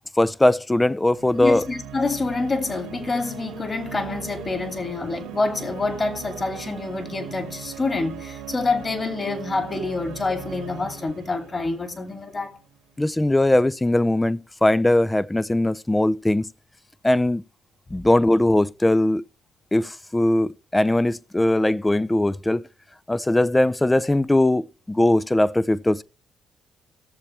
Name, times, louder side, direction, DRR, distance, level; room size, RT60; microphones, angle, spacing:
voice 1, 0.2-1.6 13.0-16.5 17.0-17.4 17.9-19.2 19.7-22.6 23.1-26.0, left 1 dB, 15° left, 0.5 m, -20 dB
sound 1, 1.1-12.6, right 8 dB, 90° right, 2.1 m, -39 dB
voice 2, 1.4-12.5, left 3 dB, 35° left, 2.5 m, -27 dB
18.0 x 7.0 x 3.3 m
supercardioid pair, 65°, 0 cm